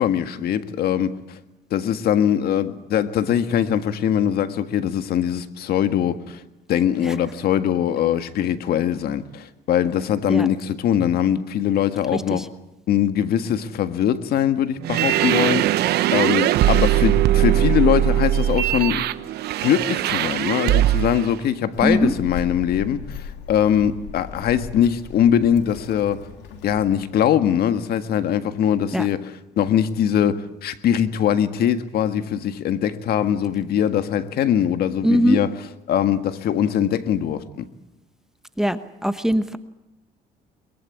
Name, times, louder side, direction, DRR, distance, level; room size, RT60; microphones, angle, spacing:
voice 1, 0.0-1.4 1.7-6.4 6.7-12.5 12.9-15.6 16.1-19.0 19.6-26.2 26.6-35.5 35.9-37.7, left 9 dB, 65° left, 1.7 m, -22 dB
voice 2, 12.1-12.5 21.8-22.1 28.9-29.1 35.0-35.4 38.6-39.6, equal, 5° right, 1.1 m, -21 dB
sound 1, 14.8-21.3, right 13 dB, 75° right, 1.0 m, -20 dB
Child speech kid speaking, 21.7-27.0, left 6 dB, 90° left, 3.2 m, -37 dB
23.0 x 22.0 x 8.5 m
cardioid pair, 110°, 17 cm